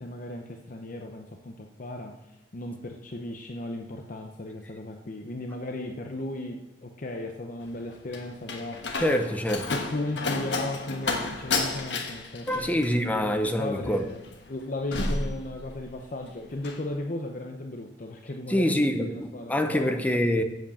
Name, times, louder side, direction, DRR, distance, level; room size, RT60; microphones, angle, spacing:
voice 1, 0.0-9.0 9.7-20.0, left 2 dB, 50° left, 3 dB, 0.7 m, -36 dB
Slam, 7.6-16.1 16.4-16.9, left 3 dB, 80° left, 1.3 m, -32 dB
voice 2, 9.0-9.7 12.5-14.0 18.5-20.4, equal, 10° left, 6 dB, 0.8 m, -25 dB
8.0 x 7.3 x 7.1 m, 0.98 s
head